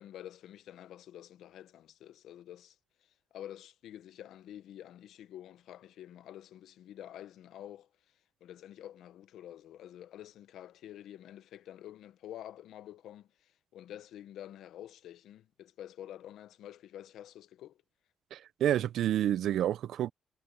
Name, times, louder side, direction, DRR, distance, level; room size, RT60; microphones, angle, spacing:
voice 1, 0.0-2.8 3.3-7.9 8.4-17.8, left 11 dB, 80° left, 0.9 m, -48 dB
voice 2, 18.3-20.1, right 11 dB, 75° right, 0.5 m, -29 dB
cardioid pair, 90°, 0 cm